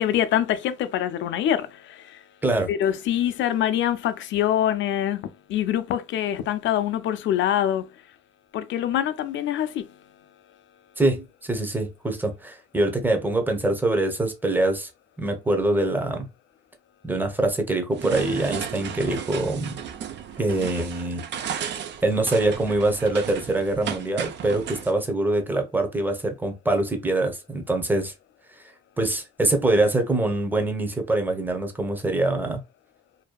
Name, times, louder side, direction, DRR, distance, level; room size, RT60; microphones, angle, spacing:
voice 1, 0.0-2.2 2.7-7.9 8.5-9.9, left 11 dB, 70° left, 0.4 m, -25 dB
voice 2, 11.0-14.9 15.2-16.3 17.0-19.8 20.4-21.7 22.0-28.1 29.0-32.6, right 2 dB, 10° right, 0.7 m, -24 dB
sound 1, 17.9-24.9, right 8 dB, 65° right, 0.4 m, -34 dB
2.6 x 2.2 x 2.2 m
cardioid pair, 90°, 20 cm